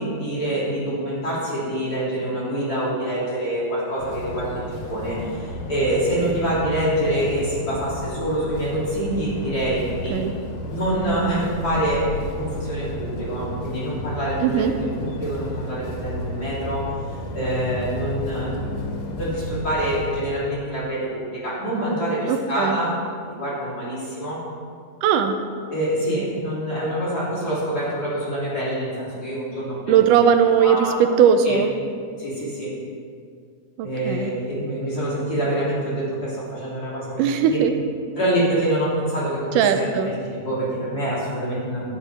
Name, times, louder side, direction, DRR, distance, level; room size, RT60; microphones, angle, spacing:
voice 1, 0.0-10.2 10.7-16.9 17.3-22.9 23.3-24.4 25.7-29.9 30.6-31.0 31.4-31.6 32.2-32.7 33.8-37.6 38.2-41.9, right 1 dB, 30° left, -9 dB, 3.6 m, -26 dB
sound 1, 4.0-20.2, left 1 dB, 80° left, 2.7 m, -33 dB
voice 2, 14.4-14.8 22.3-22.8 25.0-25.4 29.9-31.7 33.8-34.3 37.2-37.7 39.6-40.1, right 7 dB, 90° right, 7 dB, 2.3 m, -19 dB
11.0 x 9.1 x 4.3 m, 2.2 s
omnidirectional pair, 3.7 m